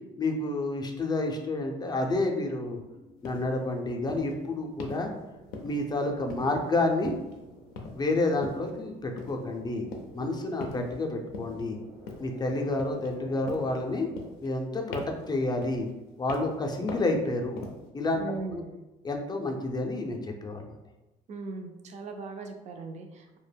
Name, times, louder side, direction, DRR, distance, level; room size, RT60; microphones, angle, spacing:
voice 1, 0.2-2.8 3.2-5.1 5.6-7.2 7.9-11.8 12.2-14.1 14.4-15.9 16.2-17.7 17.9-18.2 18.5-18.6 19.0-20.8, left 2 dB, 25° left, 3 dB, 0.4 m, -29 dB
sound 1, 2.3-14.3, right 1 dB, 80° right, 1.1 m, -52 dB
sound 2, 3.2-3.5 4.1-4.3 4.8-5.1 5.5-5.9 6.3-6.7 7.0-7.4 7.8-8.1 8.4-8.7 9.2-9.4 9.9-10.2 10.6-11.0 11.3-11.6 12.1-12.4 12.8-13.2 13.5-13.8 14.2-14.6 14.9-15.3 15.6-15.9 16.3-16.6 16.9-17.2 17.6-17.9, left 3 dB, 85° left, 0.4 m, -41 dB
voice 2, 18.2-18.7 21.3-23.4, right 3 dB, 45° right, 4 dB, 0.4 m, -39 dB
2.2 x 2.0 x 3.3 m, 1.0 s
supercardioid pair, 80°, 16 cm